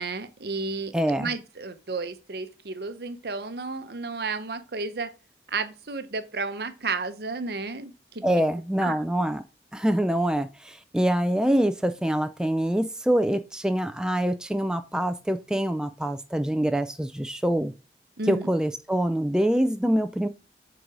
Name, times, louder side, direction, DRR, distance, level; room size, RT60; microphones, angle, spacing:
voice 1, 0.0-5.1 5.5-8.4 8.8-9.0 18.2-18.5, right 4 dB, 65° right, 0.8 m, -32 dB
voice 2, 0.9-1.3 8.2-9.4 9.7-17.7 18.3-20.3, right 1 dB, 5° right, 0.3 m, -25 dB
7.8 x 4.0 x 4.6 m
head